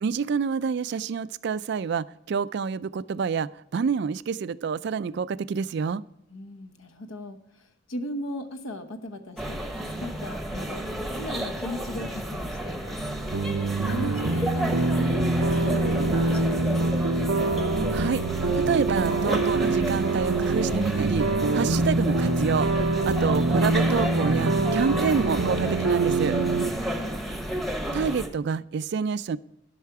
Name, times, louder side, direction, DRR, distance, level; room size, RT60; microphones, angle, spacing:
voice 1, 0.0-6.0 17.9-18.2 18.5-22.7 23.0-26.4 27.9-29.4, right 6 dB, 55° right, 18 dB, 0.3 m, -27 dB
voice 2, 6.3-13.0 13.9-17.0 26.6-27.3, left 1 dB, 75° left, 9 dB, 0.9 m, -38 dB
sound 1, 9.4-28.3, right 1 dB, ahead, 0.8 m, -31 dB
sound 2, 13.3-26.7, right 2 dB, 90° right, 0.7 m, -25 dB
11.5 x 5.6 x 4.7 m, 0.83 s
head